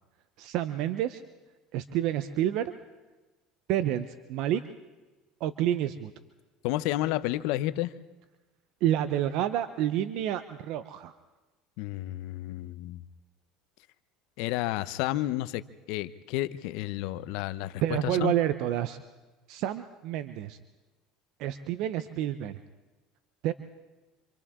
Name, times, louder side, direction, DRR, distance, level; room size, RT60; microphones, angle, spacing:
voice 1, 0.4-1.2 1.7-2.6 3.7-4.6 5.4-6.1 8.8-11.1 17.8-19.0 19.5-20.6 21.4-22.6 23.4-23.5, right 11 dB, 65° right, 11 dB, 0.8 m, -29 dB
voice 2, 6.6-7.9 11.8-13.0 14.4-15.6 15.9-18.3, left 16 dB, 75° left, 14 dB, 0.8 m, -31 dB
27.5 x 25.5 x 3.7 m, 1.2 s
supercardioid pair, 110°, 0 cm